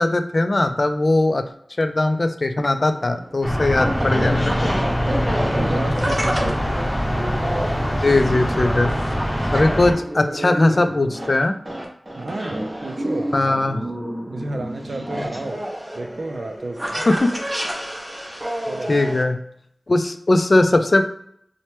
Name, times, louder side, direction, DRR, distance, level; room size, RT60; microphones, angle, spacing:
voice 1, 0.0-1.5 1.8-4.7 8.0-8.9 9.5-11.5 13.3-13.8 17.1-17.3 18.9-19.4 19.9-21.0, left 2 dB, 50° left, 8 dB, 0.3 m, -19 dB
sound 1, 2.6-19.2, equal, 30° right, 0.7 m, -29 dB
sound 2, 3.4-9.9, equal, 5° left, 0.9 m, -23 dB
voice 2, 5.5-6.7 12.2-13.6 14.3-15.7 15.9-17.0 18.7-18.9, right 2 dB, 75° right, 4 dB, 0.4 m, -31 dB
2.8 x 2.1 x 3.2 m, 0.68 s
wide cardioid pair, 65°, 0 cm